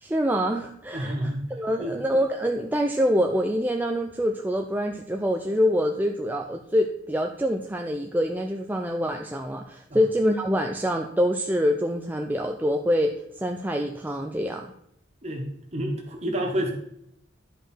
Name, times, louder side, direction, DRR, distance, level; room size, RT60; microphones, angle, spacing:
voice 1, 0.0-1.3 1.6-14.7, equal, 10° right, 2 dB, 0.4 m, -25 dB
voice 2, 0.9-1.4 1.8-1.9 15.2-16.7, equal, 35° right, 0 dB, 1.8 m, -29 dB
11.0 x 5.1 x 4.5 m, 0.73 s
head